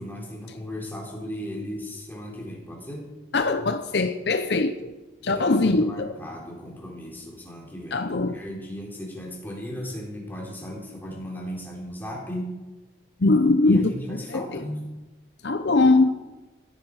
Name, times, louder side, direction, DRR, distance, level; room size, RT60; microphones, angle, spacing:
voice 1, 0.0-3.1 5.2-12.5 13.7-14.9, equal, 10° left, -2 dB, 3.7 m, -36 dB
voice 2, 3.3-4.9 5.2-6.1 7.9-8.4 13.2-14.6 15.4-16.1, left 3 dB, 60° left, 9 dB, 0.6 m, -21 dB
15.5 x 14.0 x 4.8 m, 1.1 s
head